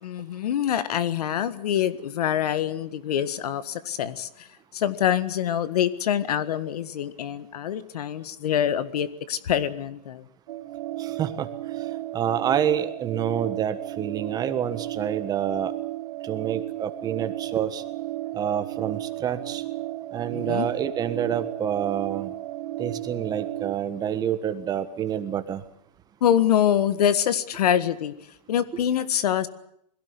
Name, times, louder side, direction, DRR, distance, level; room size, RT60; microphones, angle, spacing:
voice 1, 0.0-4.5 4.7-10.2 20.3-20.7 26.2-28.1 28.5-29.5, left 10 dB, 80° left, 14 dB, 1.7 m, -25 dB
sound 1, 10.5-23.7, right 16 dB, 60° right, 1.5 m, -34 dB
voice 2, 11.0-11.5 12.1-15.7 16.2-17.8 18.3-19.6 20.1-22.3 22.8-25.6, right 9 dB, 20° right, 10 dB, 1.4 m, -27 dB
22.0 x 16.5 x 9.7 m, 0.72 s
supercardioid pair, 150°, 20 cm